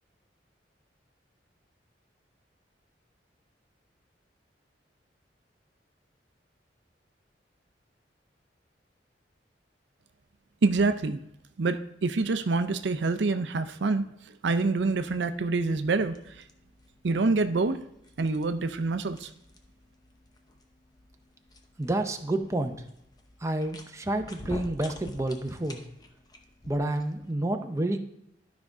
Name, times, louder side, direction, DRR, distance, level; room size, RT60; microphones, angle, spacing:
voice 1, 10.6-11.2 11.6-14.1 14.4-16.4 17.0-17.8 18.2-19.3, right 3 dB, 75° right, 10 dB, 0.5 m, -26 dB
sound 1, 15.0-27.3, left 1 dB, 20° left, 0.8 m, -49 dB
voice 2, 21.8-22.8 23.4-25.8 26.7-28.0, right 1 dB, 15° right, 5 dB, 0.6 m, -29 dB
12.0 x 5.2 x 3.5 m, 0.79 s
head